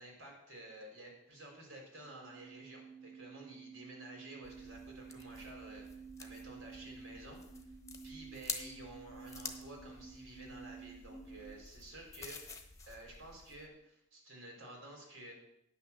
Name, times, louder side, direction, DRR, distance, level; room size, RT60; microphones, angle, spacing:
voice 1, 0.0-7.7 8.0-12.4 12.9-15.3, right 1 dB, 85° right, 0 dB, 3.9 m, -52 dB
sound 1, 1.9-11.5, right 5 dB, 45° left, 0.8 m, -52 dB
sound 2, 4.4-13.7, left 4 dB, 15° left, 1.1 m, -49 dB
9.9 x 6.2 x 7.1 m, 0.80 s
head